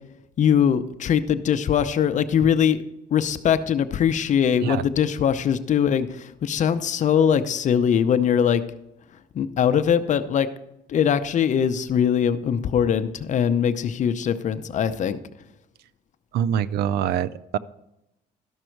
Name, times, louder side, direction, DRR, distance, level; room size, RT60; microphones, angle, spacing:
voice 1, 0.4-2.8 3.1-8.6 9.3-10.5 10.9-15.2, left 8 dB, 45° left, 11 dB, 0.7 m, -21 dB
voice 2, 16.3-17.6, right 9 dB, 75° right, 18 dB, 0.4 m, -24 dB
12.5 x 6.2 x 4.5 m, 0.88 s
cardioid pair, 110°, 17 cm